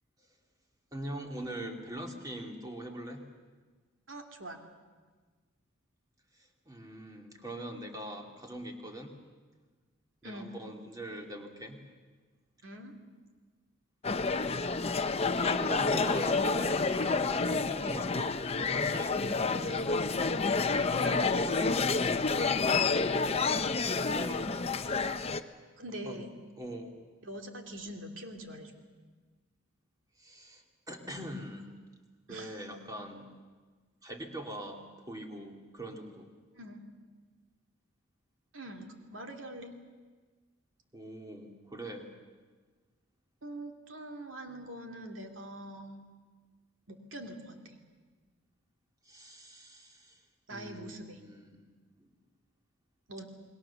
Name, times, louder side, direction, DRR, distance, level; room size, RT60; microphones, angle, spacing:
voice 1, 0.9-3.2 6.4-9.2 10.2-11.8 15.1-19.6 24.0-24.5 26.1-26.2 26.6-26.9 30.2-31.8 32.3-33.3 34.0-36.3 40.9-42.1 49.0-50.2 50.5-51.7 52.0-52.1, right 1 dB, 20° right, 2 dB, 2.5 m, -42 dB
voice 2, 4.1-4.6 10.2-10.5 12.6-12.9 19.6-19.9 21.0-21.7 25.8-26.3 27.2-28.8 32.3-32.5 36.5-36.8 38.5-39.7 43.4-46.0 46.9-47.8 50.5-51.2 53.1-53.3, right 1 dB, 65° right, 3 dB, 2.6 m, -43 dB
sound 1, 14.0-25.4, left 4 dB, 30° left, 0.7 m, -29 dB
28.5 x 20.5 x 7.1 m, 1.4 s
head